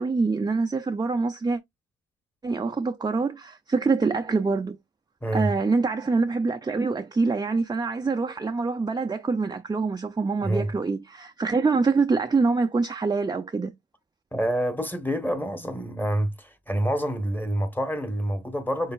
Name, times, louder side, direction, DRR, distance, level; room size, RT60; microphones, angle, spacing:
voice 1, 0.0-1.6 2.4-4.8 5.3-13.7, right 4 dB, 15° right, 0.5 m, -25 dB
voice 2, 5.2-5.5 10.4-10.7 14.3-18.9, right 1 dB, 5° left, 1.1 m, -27 dB
6.7 x 3.2 x 2.4 m
cardioid pair, 90°, 30 cm